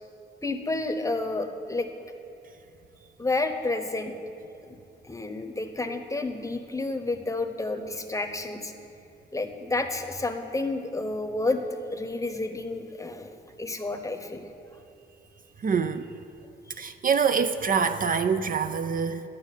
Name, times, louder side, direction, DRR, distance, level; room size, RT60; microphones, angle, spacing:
voice 1, 0.4-1.9 3.2-4.1 4.7-4.8 5.0-8.7 9.3-11.6 11.9-13.3 13.6-14.5, left 2 dB, 15° left, 7 dB, 0.8 m, -30 dB
voice 2, 15.6-16.1 16.8-19.2, right 6 dB, 45° right, 10 dB, 0.5 m, -25 dB
12.0 x 6.3 x 9.0 m, 2.7 s
cardioid pair, 105°, 19 cm